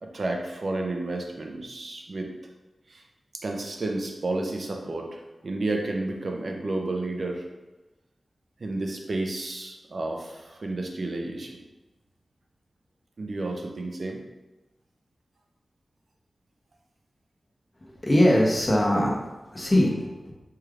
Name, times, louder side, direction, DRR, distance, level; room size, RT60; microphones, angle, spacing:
voice 1, 0.0-2.3 2.9-3.0 3.3-7.5 8.6-11.6 13.2-14.2, right 2 dB, 60° right, 1 dB, 0.6 m, -31 dB
voice 2, 17.8-20.3, left 1 dB, 25° left, -2 dB, 0.8 m, -22 dB
4.6 x 3.2 x 2.4 m, 1.1 s
wide cardioid pair, 80°, 0 cm